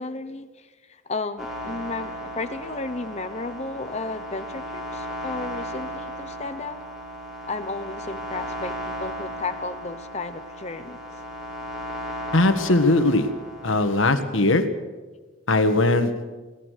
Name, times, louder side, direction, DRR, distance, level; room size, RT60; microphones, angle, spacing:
voice 1, 0.0-6.8 7.5-11.0, left 3 dB, 30° left, 8 dB, 0.8 m, -33 dB
sound 1, 1.4-14.1, equal, ahead, 5.4 m, -35 dB
voice 2, 12.3-13.3 13.6-14.6 15.5-16.1, left 2 dB, 70° left, 8 dB, 1.6 m, -19 dB
23.5 x 17.5 x 6.6 m, 1.3 s
head